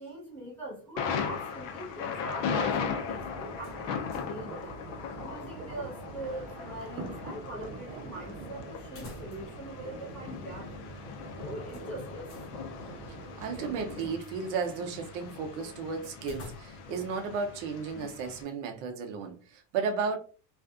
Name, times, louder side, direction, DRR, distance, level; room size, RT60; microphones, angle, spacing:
voice 1, 0.0-4.8 5.2-10.7 11.4-12.5, right 1 dB, 5° left, 1.1 m, -42 dB
Thunder, 1.0-18.4, left 6 dB, 75° left, 0.7 m, -38 dB
sound 1, 2.6-14.1, right 3 dB, 40° right, 1.0 m, -44 dB
sound 2, 3.6-4.5 4.8-4.9 8.8-9.7 10.0-10.1 11.7-12.5 16.2-17.0, left 2 dB, 35° left, 0.8 m, -48 dB
voice 2, 13.4-20.2, right 5 dB, 70° right, 0.6 m, -34 dB
2.5 x 2.4 x 2.4 m
cardioid pair, 160°, 37 cm